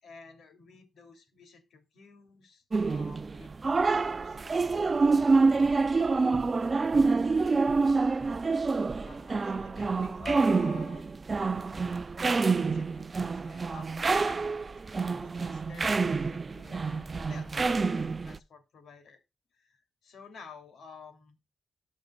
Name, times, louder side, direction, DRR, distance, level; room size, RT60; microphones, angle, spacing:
voice 1, 0.0-5.1 5.6-6.8 9.0-11.1 12.2-19.2 19.5-21.4, left 5 dB, 75° left, 7 dB, 2.9 m, -51 dB
sound 1, 2.7-18.4, right 4 dB, 30° right, 0.4 m, -27 dB
18.5 x 6.4 x 2.4 m, 0.23 s
wide cardioid pair, 145°, 0 cm